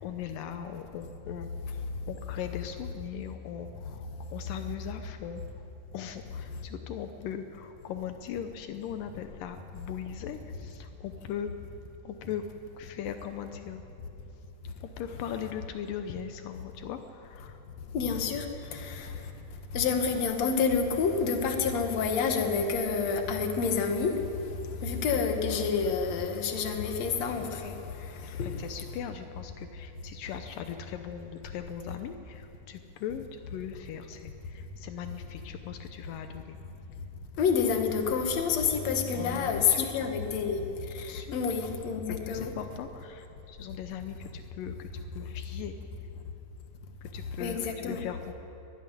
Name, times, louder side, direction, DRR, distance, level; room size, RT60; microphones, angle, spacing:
voice 1, 0.0-1.5 2.1-5.4 5.9-11.5 12.1-12.4 12.8-13.8 15.0-17.5 28.4-32.4 32.7-34.3 34.8-36.5 39.1-39.9 41.0-41.4 42.1-44.9 45.1-45.7 47.1-48.3, left 9 dB, 80° left, 7 dB, 2.5 m, -39 dB
voice 2, 17.9-18.5 18.7-19.1 19.7-24.1 24.8-27.7 28.4-28.5 37.4-40.6 41.3-42.5 47.4-48.0, left 5 dB, 55° left, 4 dB, 2.6 m, -28 dB
23.5 x 12.0 x 9.9 m, 3.0 s
omnidirectional pair, 3.9 m